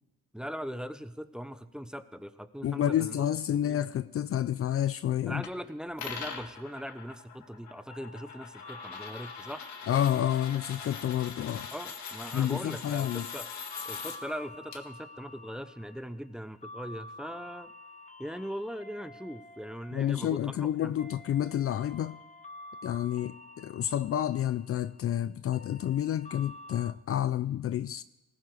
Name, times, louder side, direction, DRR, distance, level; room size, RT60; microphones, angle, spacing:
voice 1, 0.3-3.3 3.5-3.8 5.3-9.7 11.7-13.5 13.8-17.7 18.2-20.9, equal, 5° right, 0.8 m, -40 dB
voice 2, 2.6-5.4 9.9-11.7 12.3-13.3 19.9-22.2 22.8-28.0, left 11 dB, 50° left, 0.5 m, -29 dB
sound 1, 5.4-5.5 6.0-14.2 14.7-14.8, left 6 dB, 65° left, 1.9 m, -42 dB
sound 2, 7.9-26.9, left 2 dB, 25° left, 1.0 m, -50 dB
19.5 x 15.0 x 4.9 m
cardioid pair, 90°, 30 cm